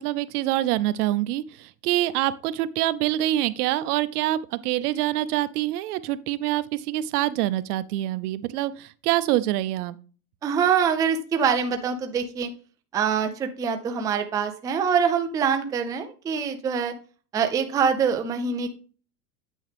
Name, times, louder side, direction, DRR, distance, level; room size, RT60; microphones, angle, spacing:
voice 1, 0.0-10.0, right 14 dB, 80° right, 0.7 m, -25 dB
voice 2, 10.4-12.5 12.9-16.9 17.3-18.7, right 6 dB, 10° right, 0.3 m, -24 dB
8.4 x 6.3 x 3.4 m
supercardioid pair, 140°, 45 cm